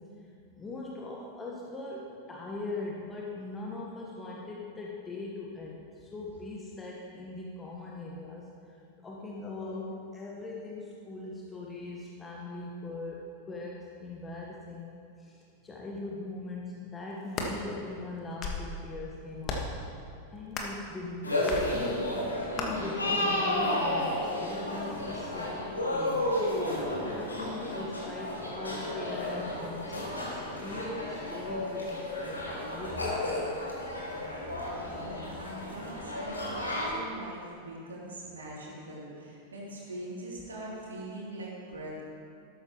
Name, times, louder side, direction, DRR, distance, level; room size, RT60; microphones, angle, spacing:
voice 1, 0.0-14.9 15.2-19.7 20.3-22.2 22.6-26.4 26.9-33.2, left 2 dB, 15° left, -3 dB, 1.3 m, -40 dB
sound 1, 17.1-17.5 18.2-18.7 19.4-19.8 20.5-20.8 21.5-21.7 22.6-22.7, left 3 dB, 30° left, 1.6 m, -34 dB
sound 2, 21.2-36.9, left 1 dB, 80° left, 2.3 m, -32 dB
voice 2, 34.8-42.0, right 1 dB, 70° right, -5 dB, 3.2 m, -42 dB
13.0 x 12.5 x 3.1 m, 2.5 s
figure-of-eight pair, 90°, 0 cm